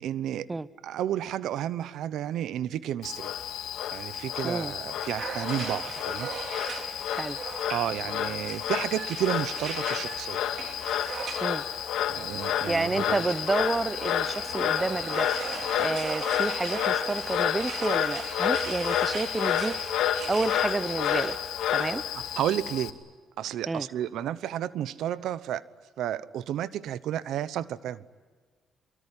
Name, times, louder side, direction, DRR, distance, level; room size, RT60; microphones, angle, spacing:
voice 1, 0.0-0.5 0.8-3.3 3.9-6.3 7.7-10.4 12.1-13.2 21.8-21.9 22.3-22.9 23.4-25.6 26.0-28.0, right 11 dB, 80° right, 18 dB, 0.8 m, -31 dB
Frog, 3.0-22.9, left 10 dB, 80° left, 2.3 m, -30 dB
sound 1, 5.0-21.4, right 5 dB, 55° right, 3.5 m, -40 dB
voice 2, 12.4-15.3 15.8-19.7 20.3-21.4 21.7-22.0 23.7-23.9, right 3 dB, 20° right, 18 dB, 0.8 m, -30 dB
24.0 x 22.5 x 9.9 m, 1.5 s
cardioid pair, 90°, 0 cm